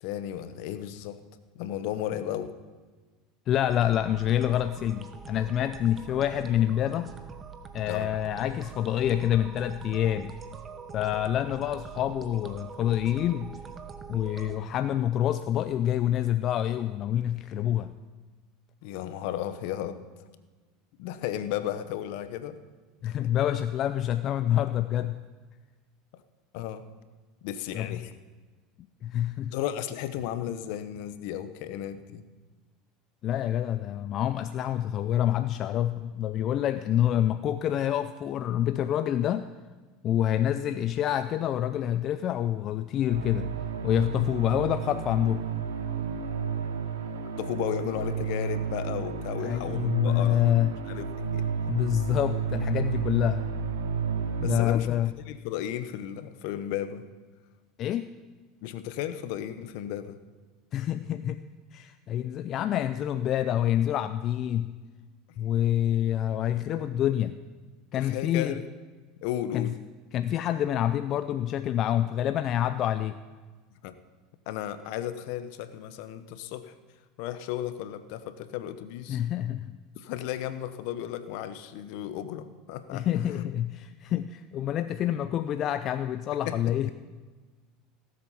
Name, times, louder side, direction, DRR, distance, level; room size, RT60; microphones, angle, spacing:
voice 1, 0.0-1.2 1.5-2.5 7.8-8.1 18.8-20.0 21.0-22.6 26.1-26.2 26.5-26.8 27.4-28.1 29.5-32.2 36.9-37.0 47.4-50.5 50.8-51.5 54.4-54.9 55.3-57.0 58.6-60.2 67.9-68.6 69.2-69.7 73.8-74.0 74.5-76.7 77.2-79.2 80.0-83.5 86.5-86.6, left 11 dB, 70° left, 11 dB, 0.9 m, -34 dB
voice 2, 3.5-7.1 7.7-10.3 10.9-13.5 14.1-17.9 23.0-25.2 27.7-28.0 29.0-29.6 33.2-39.5 40.0-43.5 43.8-45.5 49.4-50.8 51.7-53.4 54.4-55.1 57.8-58.1 60.7-61.4 61.7-64.7 65.4-67.3 67.9-68.6 69.5-69.7 70.1-73.2 79.1-79.8 82.9-86.9, left 11 dB, 45° left, 11 dB, 0.5 m, -27 dB
sound 1, 3.7-14.6, right 6 dB, 30° right, 1.2 m, -44 dB
sound 2, 43.1-54.6, right 6 dB, 85° right, 1.1 m, -32 dB
17.0 x 7.8 x 5.7 m, 1.3 s
hypercardioid pair, 100°, 0 cm